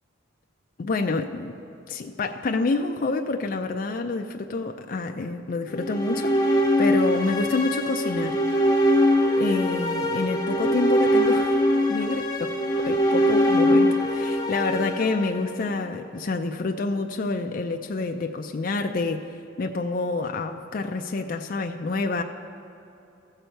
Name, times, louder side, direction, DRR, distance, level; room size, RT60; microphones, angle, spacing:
voice 1, 0.8-1.6 1.9-8.4 9.4-11.6 11.9-22.2, left 3 dB, 45° left, 4 dB, 0.4 m, -28 dB
sound 1, 5.7-15.9, equal, 20° left, 0.8 m, -22 dB
15.0 x 6.8 x 4.5 m, 2.9 s
head